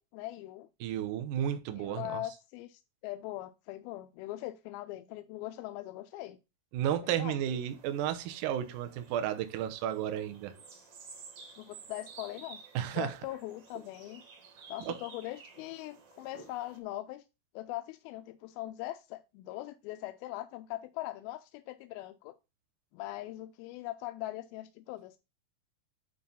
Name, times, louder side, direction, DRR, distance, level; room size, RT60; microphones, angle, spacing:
voice 1, 0.0-0.7 1.8-6.4 7.0-7.4 11.6-14.2 14.7-17.2 17.5-22.3 22.9-25.2, left 15 dB, 90° left, 2.4 m, -41 dB
voice 2, 0.8-2.2 6.7-10.5 12.8-13.1 14.9-15.0, right 10 dB, 70° right, 2.2 m, -33 dB
sound 1, 7.5-16.8, right 4 dB, 50° right, 2.2 m, -53 dB
9.5 x 3.4 x 5.6 m
omnidirectional pair, 4.3 m